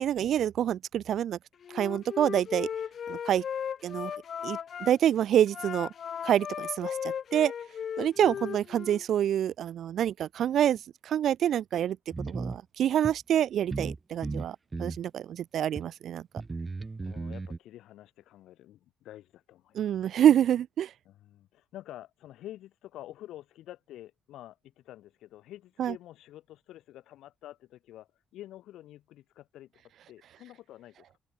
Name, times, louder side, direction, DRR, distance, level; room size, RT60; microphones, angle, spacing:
voice 1, 0.0-1.4 1.7-2.7 3.1-3.4 3.8-4.1 4.4-5.9 6.2-7.5 8.0-12.0 12.3-16.2 19.7-20.9 25.8-25.9, right 10 dB, 70° right, 0.4 m, -27 dB
Wind instrument woodwind instrument, 1.6-4.9 5.5-9.0, left 8 dB, 55° left, 7.6 m, -36 dB
voice 2, 8.2-8.5 17.0-20.1 21.1-29.8 30.1-31.2, left 13 dB, 85° left, 5.3 m, -48 dB
sound 1, 12.1-12.6 13.0-13.2 13.7-14.0 14.2-15.0 15.8-15.9 16.4-17.6, right 3 dB, 25° right, 5.8 m, -35 dB
cardioid pair, 90°, 0 cm